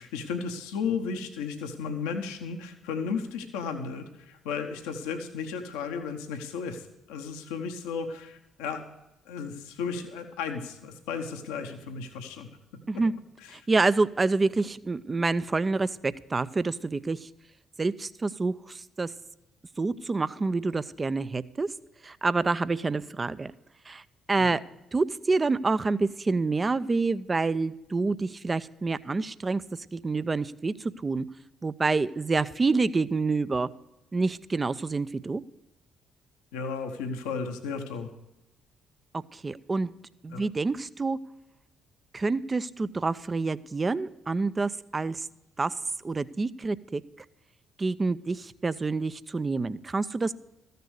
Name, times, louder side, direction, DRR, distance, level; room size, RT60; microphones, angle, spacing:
voice 1, 0.0-8.8 9.3-12.5 13.4-13.6 24.4-24.6 36.5-38.1 40.3-40.4, left 5 dB, 80° left, 4 dB, 0.9 m, -34 dB
voice 2, 13.5-17.3 17.8-19.1 19.8-21.7 22.0-23.5 23.9-24.0 24.3-24.6 24.9-29.6 29.9-31.3 31.6-33.7 34.1-35.4 39.1-39.9 40.2-41.2 42.1-45.3 45.6-45.7 46.0-47.0 47.8-50.3, right 3 dB, 30° right, 15 dB, 0.5 m, -27 dB
14.0 x 6.7 x 6.4 m, 0.93 s
hypercardioid pair, 50°, 0 cm